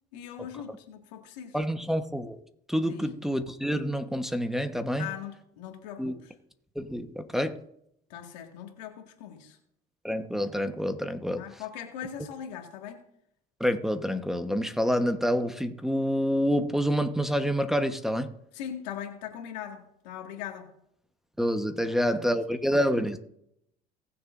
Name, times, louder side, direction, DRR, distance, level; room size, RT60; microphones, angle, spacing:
voice 1, 0.1-1.6 2.8-3.1 5.0-6.3 8.1-9.6 11.4-13.0 18.5-20.7 21.9-22.4 22.7-22.9, left 9 dB, 85° left, 2.0 m, -40 dB
voice 2, 1.5-2.4 2.7-5.1 6.0-6.1 6.7-7.6 10.0-11.6 13.6-18.3 21.4-23.2, equal, ahead, 1.2 m, -27 dB
19.0 x 6.9 x 2.6 m
hypercardioid pair, 75°, 21 cm